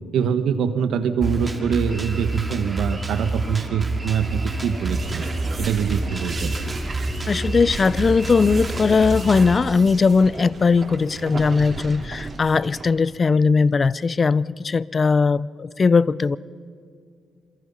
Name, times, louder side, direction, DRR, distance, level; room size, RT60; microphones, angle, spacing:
voice 1, 0.1-5.3 5.6-6.5, right 7 dB, 75° right, 9 dB, 1.5 m, -24 dB
Drum kit, 1.2-9.5, right 2 dB, 20° right, 2.5 m, -28 dB
sound 1, 4.9-12.9, right 3 dB, 35° right, 3.6 m, -35 dB
voice 2, 7.3-16.4, left 4 dB, 35° left, 21 dB, 0.5 m, -19 dB
28.0 x 22.5 x 5.7 m, 2.2 s
cardioid pair, 90°, 0 cm